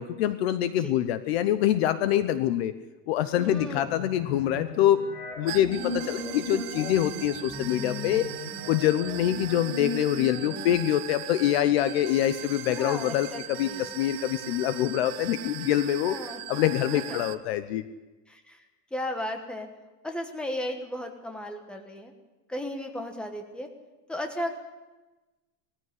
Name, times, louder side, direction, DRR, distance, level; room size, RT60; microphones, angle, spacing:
voice 1, 0.0-2.7 3.1-5.0 5.4-8.2 8.7-16.2 16.5-17.8, left 12 dB, 40° left, 12 dB, 0.8 m, -25 dB
voice 2, 3.4-4.0 12.7-13.9 16.0-16.4 16.9-17.2 18.3-18.7 18.9-19.7 20.0-22.1 22.5-23.7 24.1-24.5, left 1 dB, ahead, 4 dB, 1.2 m, -35 dB
sound 1, 3.6-10.7, left 1 dB, 60° left, 7.4 m, -37 dB
sound 2, 5.5-17.4, right 15 dB, 70° right, 1.3 m, -40 dB
19.5 x 14.5 x 9.9 m, 1.1 s
supercardioid pair, 180°, 47 cm